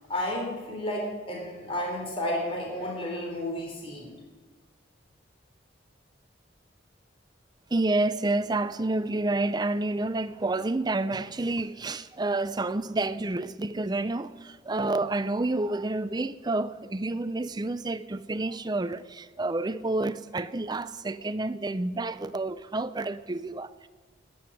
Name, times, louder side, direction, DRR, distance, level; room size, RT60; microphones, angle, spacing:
voice 1, 0.1-4.2, left 1 dB, 30° left, 3.5 m, -32 dB
voice 2, 7.7-23.9, right 2 dB, 20° right, 0.5 m, -29 dB
13.0 x 9.5 x 9.9 m
head